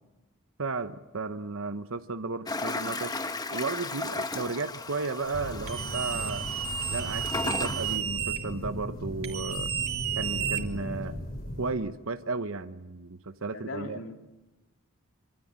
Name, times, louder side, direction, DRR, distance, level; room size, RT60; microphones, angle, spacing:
voice 1, 0.6-3.1 3.5-6.4 6.9-9.7 10.2-11.2 11.6-14.0, right 3 dB, 70° right, 10 dB, 1.0 m, -34 dB
Toilet flush, 2.5-8.0, left 3 dB, 20° left, 1.2 m, -35 dB
sound 1, 5.3-11.7, equal, 45° left, 3.8 m, -37 dB
sound 2, 5.7-8.4 9.2-11.0, right 9 dB, 90° right, 3.5 m, -32 dB
voice 2, 13.5-14.2, left 3 dB, 65° left, 5 dB, 2.8 m, -39 dB
26.0 x 24.5 x 8.8 m, 1.1 s
head